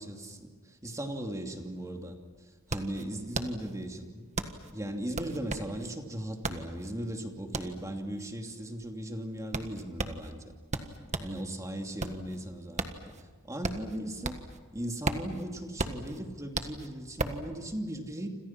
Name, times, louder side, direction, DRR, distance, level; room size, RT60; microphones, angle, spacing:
voice 1, 0.0-4.3 4.7-10.4 11.2-14.4 14.7-18.3, right 1 dB, 15° right, 3 dB, 2.7 m, -38 dB
sound 1, 1.7-1.8 2.1-11.4 11.8-14.6 14.9-17.5, right 2 dB, 35° right, 1.6 m, -36 dB
29.5 x 27.0 x 6.0 m, 1.4 s
head